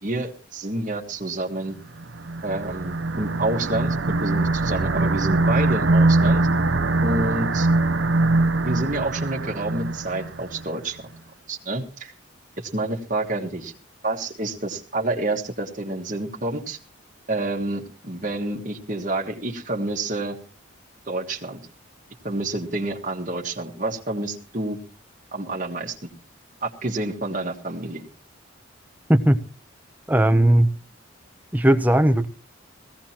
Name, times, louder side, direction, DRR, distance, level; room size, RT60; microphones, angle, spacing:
voice 1, 0.0-1.7 2.4-6.4 7.0-7.7 8.6-11.1 11.5-12.1 12.6-13.7 14.0-16.8 17.3-20.4 21.1-21.6 22.2-24.8 25.3-26.0 26.6-28.0, right 2 dB, 40° right, 1.7 m, -28 dB
sound 1, 2.0-10.6, right 2 dB, 65° right, 0.7 m, -22 dB
voice 2, 30.1-30.7 31.5-32.3, right 1 dB, 10° right, 0.6 m, -17 dB
20.5 x 16.5 x 2.9 m
head